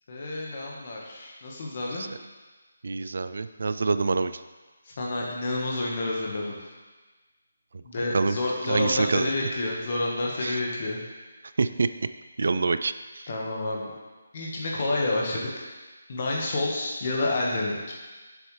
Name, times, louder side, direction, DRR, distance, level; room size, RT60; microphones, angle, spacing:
voice 1, 0.1-2.1 5.0-6.5 7.8-11.0 13.3-13.9 14.3-15.5 16.1-17.9, left 2 dB, 30° left, -2 dB, 1.4 m, -29 dB
voice 2, 2.8-4.4 8.1-8.4 8.7-9.3 10.4-10.6 11.6-11.9 12.4-12.9, right 3 dB, 50° right, 12 dB, 0.3 m, -25 dB
9.5 x 7.2 x 3.3 m, 1.3 s
hypercardioid pair, 180°, 0 cm